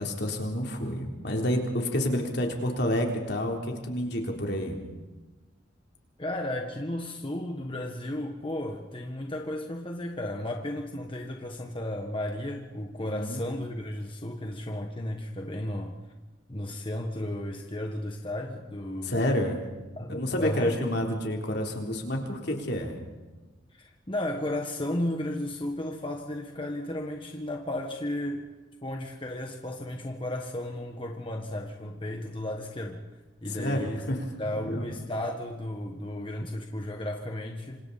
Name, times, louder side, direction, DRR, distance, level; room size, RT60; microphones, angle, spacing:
voice 1, 0.0-4.8 13.0-13.4 19.0-19.6 20.1-23.0 33.5-34.2 34.4-34.8, left 1 dB, 60° left, 1 dB, 3.7 m, -29 dB
voice 2, 6.2-16.0 16.5-19.2 20.0-20.8 23.7-28.5 28.8-33.0 33.4-34.0 34.4-37.8, left 1 dB, 30° left, 2 dB, 1.5 m, -34 dB
27.5 x 26.5 x 4.3 m, 1.2 s
head